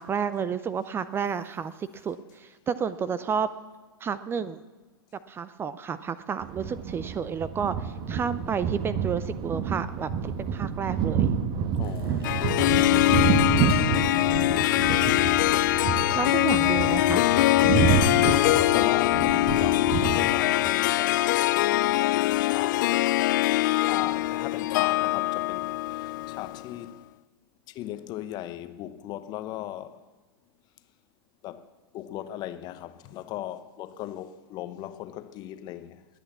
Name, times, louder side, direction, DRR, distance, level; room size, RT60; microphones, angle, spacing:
voice 1, 0.0-3.5 4.0-4.6 5.3-10.1 10.4-11.3 16.2-17.2, right 7 dB, 20° right, 0.5 m, -31 dB
sound 1, 6.4-20.7, right 7 dB, 35° right, 1.3 m, -28 dB
voice 2, 11.8-12.8 18.2-21.4 22.4-23.0 23.9-27.1 27.7-30.0 31.4-31.7 31.9-36.0, left 13 dB, 35° left, 0.9 m, -37 dB
sound 2, 11.8-17.5, right 2 dB, 75° right, 3.9 m, -41 dB
Harp, 12.2-26.7, left 17 dB, 50° left, 0.4 m, -23 dB
21.0 x 8.8 x 7.2 m
figure-of-eight pair, 105°, 13 cm